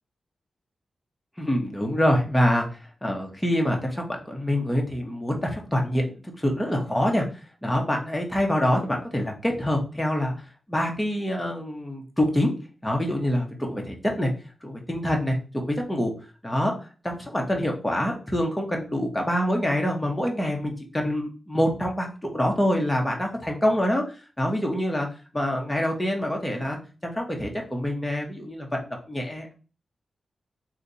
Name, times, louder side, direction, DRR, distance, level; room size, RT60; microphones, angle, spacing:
voice 1, 1.4-2.7 3.0-6.0 6.4-7.2 7.6-10.3 10.7-12.5 12.8-14.3 14.6-16.1 16.4-16.7 17.0-25.1 25.3-26.8 27.0-29.5, equal, 10° left, 1 dB, 0.9 m, -25 dB
2.9 x 2.7 x 3.9 m, 0.35 s
wide cardioid pair, 130°, 0 cm